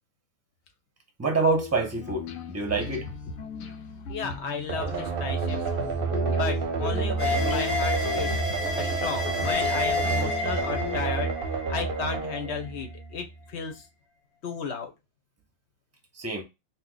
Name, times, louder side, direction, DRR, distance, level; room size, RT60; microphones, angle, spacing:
voice 1, 1.2-3.1 16.1-16.4, right 3 dB, 15° right, 0.6 m, -26 dB
sound 1, 1.4-11.0, left 5 dB, 85° left, 1.0 m, -37 dB
voice 2, 3.8-5.9 6.3-8.4 8.7-11.3 11.7-13.9 14.4-14.9, left 5 dB, 60° left, 1.0 m, -34 dB
sound 2, 4.7-13.4, right 5 dB, 55° right, 0.7 m, -29 dB
sound 3, 7.2-12.5, left 3 dB, 10° left, 1.2 m, -30 dB
2.8 x 2.4 x 3.8 m
omnidirectional pair, 1.4 m